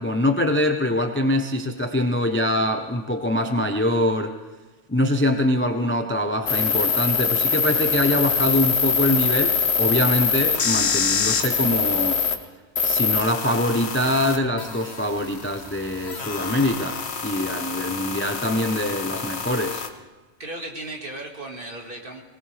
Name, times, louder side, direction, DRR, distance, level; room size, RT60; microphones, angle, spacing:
voice 1, 0.0-4.4 4.9-12.2 12.8-19.8, left 1 dB, 10° left, 5 dB, 0.7 m, -24 dB
sound 1, 6.5-12.3 12.8-19.9, left 6 dB, 60° left, 1.3 m, -24 dB
voice 2, 20.4-22.2, right 2 dB, 45° right, 1 dB, 2.2 m, -35 dB
22.5 x 18.5 x 3.4 m, 1.2 s
omnidirectional pair, 1.3 m